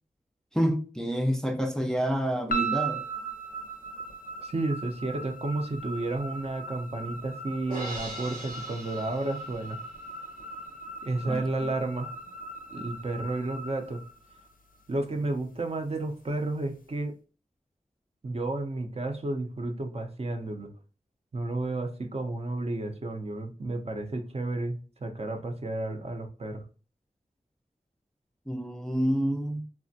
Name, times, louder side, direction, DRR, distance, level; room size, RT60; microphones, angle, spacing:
voice 1, 0.5-3.0 11.3-11.4 28.5-29.6, equal, 5° left, 0.4 m, -28 dB
sound 1, 2.5-14.8, right 4 dB, 75° left, 0.4 m, -38 dB
voice 2, 4.4-9.8 11.0-12.1 12.7-14.0 14.9-17.1 18.2-20.7 21.3-26.6, right 2 dB, 45° right, 0.5 m, -32 dB
Crash cymbal, 7.7-10.0, right 1 dB, 85° right, 1.3 m, -41 dB
3.3 x 2.1 x 2.6 m
wide cardioid pair, 60°, 14 cm